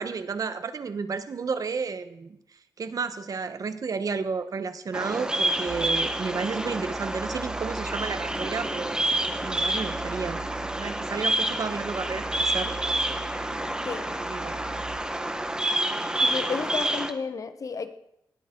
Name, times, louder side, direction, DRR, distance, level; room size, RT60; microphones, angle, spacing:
voice 1, 0.0-2.4 2.8-10.4 10.8-12.7 14.3-14.6, right 5 dB, 55° right, 11 dB, 1.1 m, -32 dB
Bird vocalization bird call bird song, 4.9-17.1, right 1 dB, 10° right, 1.3 m, -28 dB
sound 1, 5.7-16.0, right 5 dB, 35° right, 5.3 m, -43 dB
voice 2, 16.2-17.9, left 5 dB, 50° left, 10 dB, 1.1 m, -32 dB
19.5 x 13.5 x 3.9 m, 0.81 s
cardioid pair, 95°, 7 cm